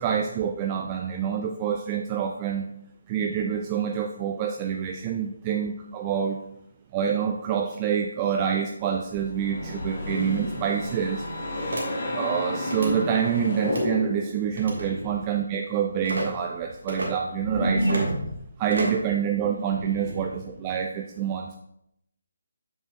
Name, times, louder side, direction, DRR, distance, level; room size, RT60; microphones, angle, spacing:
voice 1, 0.0-2.6 3.1-6.4 6.9-11.2 12.1-18.1 18.6-21.6, right 8 dB, 20° right, 3 dB, 0.4 m, -27 dB
sound 1, 9.1-14.4, left 1 dB, 45° left, 1.4 m, -31 dB
sound 2, 11.7-11.8 12.6-12.9 13.6-13.9 14.6-14.9 16.0-16.3 16.9-17.1 17.8-18.1 18.7-19.1, right 2 dB, 60° right, 1.6 m, -31 dB
sound 3, 14.4-15.4 16.1-18.5 19.4-20.5, right 1 dB, 85° right, 1.5 m, -30 dB
7.6 x 5.4 x 2.6 m, 0.77 s
figure-of-eight pair, 150°, 0 cm